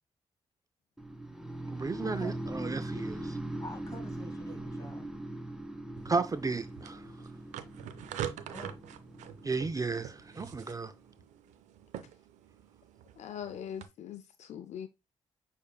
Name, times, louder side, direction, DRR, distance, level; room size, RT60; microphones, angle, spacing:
sound 1, 1.0-10.9, right 1 dB, 5° right, 0.8 m, -41 dB
voice 1, 1.7-3.4 6.1-7.0 9.4-10.9, right 4 dB, 30° right, 0.4 m, -33 dB
voice 2, 3.6-5.1 8.5-8.8, left 2 dB, 25° left, 2.2 m, -46 dB
sound 2, 6.0-13.9, right 10 dB, 90° right, 0.4 m, -45 dB
voice 3, 13.2-14.9, left 9 dB, 70° left, 0.4 m, -41 dB
6.3 x 3.6 x 2.2 m
supercardioid pair, 45°, 12 cm